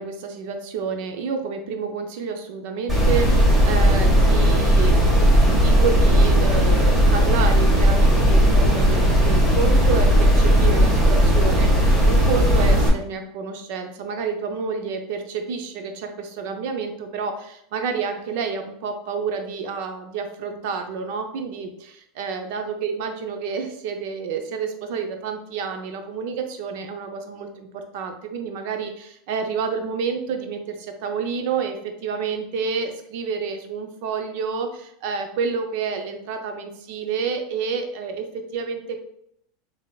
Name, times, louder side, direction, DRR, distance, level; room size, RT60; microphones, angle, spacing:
voice 1, 0.0-39.0, right 5 dB, 65° right, 6 dB, 0.6 m, -29 dB
sound 1, 2.9-12.9, equal, 20° right, 1.5 m, -16 dB
3.8 x 3.3 x 2.3 m, 0.73 s
supercardioid pair, 115°, 0 cm